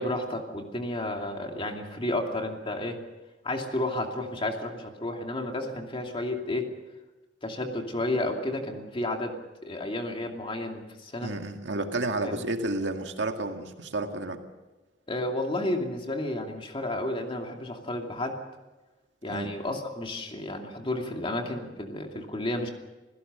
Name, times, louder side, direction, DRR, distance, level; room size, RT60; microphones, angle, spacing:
voice 1, 0.0-3.0 3.4-6.7 7.4-9.3 9.6-11.3 12.2-12.4 15.1-18.4 19.2-22.7, left 1 dB, 30° left, 3 dB, 2.6 m, -32 dB
voice 2, 11.2-14.4 19.3-19.5, right 2 dB, 75° right, 5 dB, 2.0 m, -31 dB
27.5 x 16.5 x 6.9 m, 1.1 s
head